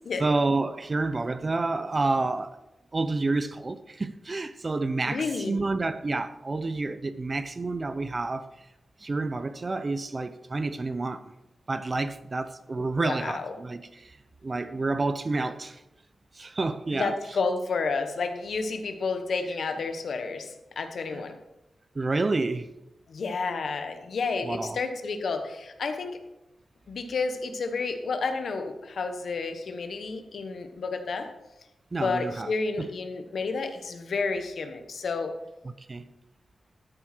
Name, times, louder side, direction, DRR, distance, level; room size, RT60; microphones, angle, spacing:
voice 1, 0.2-2.6 2.9-8.5 9.0-11.3 11.7-14.2 14.4-15.8 16.4-17.1 21.1-21.2 21.9-22.7 24.4-24.8 31.9-32.5 32.8-32.9 35.9-36.1, right 3 dB, 35° right, 0.7 m, -29 dB
voice 2, 5.1-5.6 12.8-13.5 16.9-21.4 23.1-26.2 26.9-31.3 31.9-35.3, left 4 dB, 75° left, 1.3 m, -31 dB
13.0 x 7.5 x 4.5 m
wide cardioid pair, 110°, 0 cm